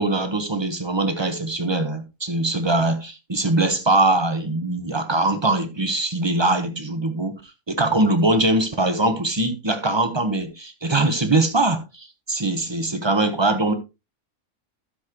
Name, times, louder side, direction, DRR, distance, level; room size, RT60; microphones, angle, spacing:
voice 1, 0.0-7.4 7.7-13.7, right 2 dB, 20° right, 1.3 m, -22 dB
13.0 x 7.5 x 3.2 m
omnidirectional pair, 1.5 m